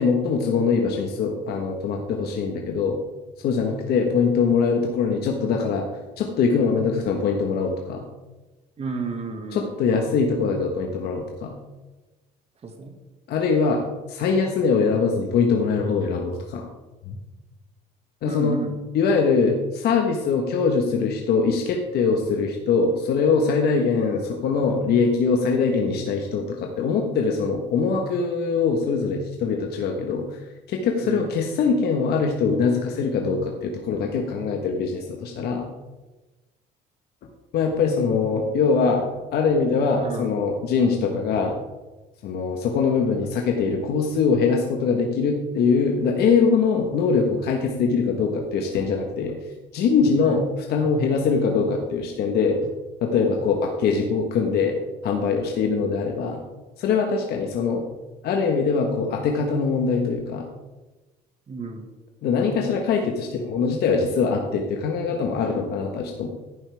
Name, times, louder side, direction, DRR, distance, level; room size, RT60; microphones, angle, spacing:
voice 1, 0.0-3.0 3.4-5.8 6.2-8.0 9.5-11.6 13.3-13.8 14.1-16.7 17.1-17.2 18.2-18.6 18.9-30.2 30.7-35.7 37.5-39.0 39.3-41.5 42.2-49.3 49.7-50.4 50.7-52.6 53.0-54.7 55.0-56.4 56.8-57.8 58.2-60.4 62.2-66.3, left 5 dB, 70° left, 2 dB, 1.4 m, -22 dB
voice 2, 8.8-9.7 12.6-12.9 18.2-18.8 31.0-31.3 39.8-40.4 50.2-50.4 61.5-61.9, right 4 dB, 40° right, 5 dB, 1.8 m, -31 dB
11.5 x 9.3 x 3.5 m, 1.1 s
cardioid pair, 110°, 17 cm